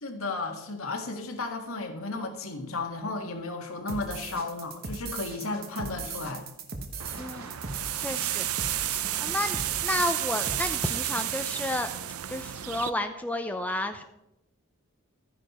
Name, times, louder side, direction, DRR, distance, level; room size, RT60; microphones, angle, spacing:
voice 1, 0.0-6.5, left 3 dB, 75° left, 4 dB, 1.8 m, -34 dB
sound 1, 3.9-11.3, right 4 dB, 45° right, 1.2 m, -38 dB
sound 2, 7.0-12.9, right 12 dB, 85° right, 0.6 m, -32 dB
voice 2, 7.2-7.5 8.0-8.8 9.2-11.9 12.3-14.0, left 1 dB, 5° left, 6 dB, 0.5 m, -31 dB
12.0 x 9.9 x 4.3 m, 0.90 s
head